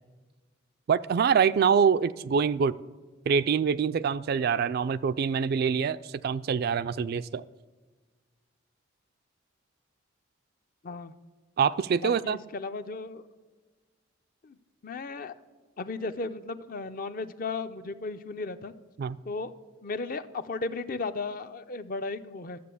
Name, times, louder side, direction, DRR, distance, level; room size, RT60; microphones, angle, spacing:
voice 1, 0.9-2.8 3.3-7.4 11.6-12.4 19.0-19.2, right 6 dB, 50° right, 14 dB, 0.3 m, -25 dB
voice 2, 12.0-13.2 14.4-14.6 14.8-15.3 15.8-18.7 19.2-19.5 19.8-22.6, left 3 dB, 45° left, 10 dB, 0.5 m, -35 dB
12.0 x 7.6 x 6.9 m, 1.4 s
head